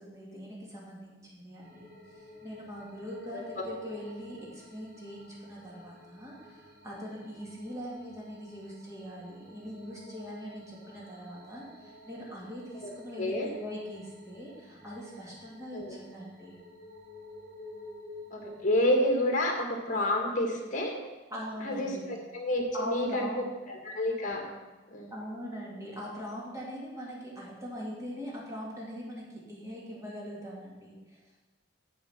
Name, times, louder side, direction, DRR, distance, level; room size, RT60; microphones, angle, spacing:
voice 1, 0.0-16.6 21.3-22.2 22.7-23.4 25.1-31.4, equal, 15° right, -4 dB, 2.3 m, -42 dB
sound 1, 1.6-18.7, left 1 dB, 70° right, 3.0 m, -52 dB
voice 2, 13.2-13.5 15.7-16.0 18.3-20.9 21.6-23.3 23.7-24.4 24.9-25.1, left 1 dB, 40° left, 1 dB, 1.8 m, -29 dB
7.6 x 7.1 x 6.0 m, 1.1 s
head